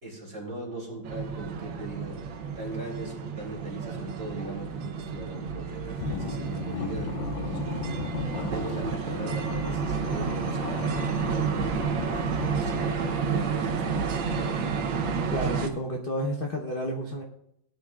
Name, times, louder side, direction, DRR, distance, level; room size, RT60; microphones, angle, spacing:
voice 1, 0.0-2.2 2.5-7.8 8.3-14.5, right 2 dB, 30° right, -3 dB, 3.3 m, -39 dB
sound 1, 1.0-15.7, right 6 dB, 70° right, 1.6 m, -30 dB
sound 2, 6.0-13.2, left 8 dB, 70° left, 1.2 m, -37 dB
voice 2, 15.3-17.2, equal, 40° left, 0 dB, 0.8 m, -31 dB
18.0 x 9.9 x 2.4 m, 0.77 s
omnidirectional pair, 2.3 m